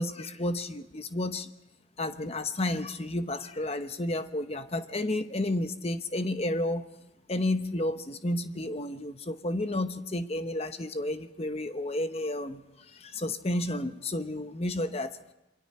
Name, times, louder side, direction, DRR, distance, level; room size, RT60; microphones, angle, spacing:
voice 1, 0.0-1.5 2.0-6.9 7.3-15.2, left 1 dB, 30° left, 9 dB, 0.9 m, -31 dB
28.0 x 22.5 x 4.3 m, 0.98 s
head